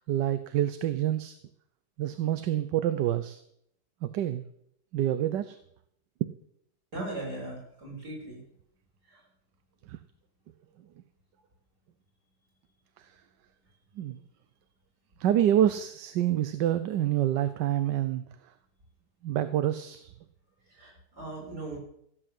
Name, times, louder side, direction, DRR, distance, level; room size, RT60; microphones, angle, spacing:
voice 1, 0.0-1.4 2.0-3.4 4.0-4.4 4.9-5.6 9.9-10.0 13.0-13.1 14.0-14.2 15.2-18.2 19.2-20.1, right 11 dB, 85° right, 11 dB, 1.4 m, -27 dB
voice 2, 6.9-8.4 9.0-9.3 20.7-21.8, right 2 dB, 65° right, -2 dB, 7.1 m, -39 dB
16.0 x 7.9 x 7.7 m, 0.71 s
omnidirectional pair, 1.8 m